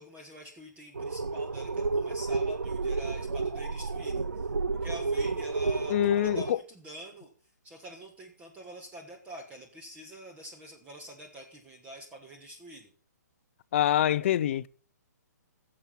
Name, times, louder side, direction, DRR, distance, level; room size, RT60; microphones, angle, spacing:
voice 1, 0.0-4.5 4.8-7.3 7.6-12.9, equal, 15° right, 1.5 m, -46 dB
sound 1, 0.9-6.5, right 4 dB, 85° right, 0.6 m, -31 dB
voice 2, 5.9-6.6 13.7-14.7, left 12 dB, 45° left, 0.4 m, -25 dB
14.5 x 7.4 x 5.6 m
figure-of-eight pair, 130°, 9 cm